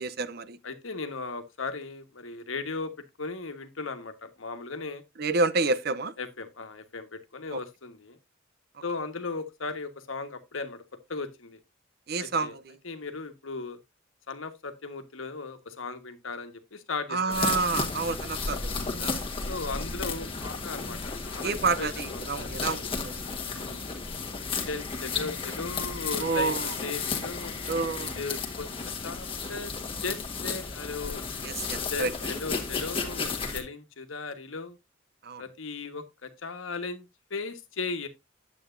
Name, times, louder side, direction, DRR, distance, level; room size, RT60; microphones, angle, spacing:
voice 1, 0.0-0.6 5.2-6.1 7.5-7.6 12.1-12.8 17.1-19.3 21.4-23.3 26.2-26.7 27.7-28.2 31.4-32.1 35.2-35.4, right 4 dB, 50° right, 0.6 m, -29 dB
voice 2, 0.6-2.9 3.2-5.0 6.2-8.2 8.8-10.8 11.1-11.6 12.2-12.5 12.8-13.8 14.3-17.4 19.5-22.8 23.5-23.9 24.6-26.5 26.8-27.6 28.0-28.7 29.0-29.7 30.0-31.2 31.9-34.8 35.4-38.1, left 4 dB, 85° left, 1.3 m, -37 dB
sound 1, 17.3-33.6, left 4 dB, 25° left, 1.4 m, -33 dB
9.1 x 8.3 x 2.5 m
head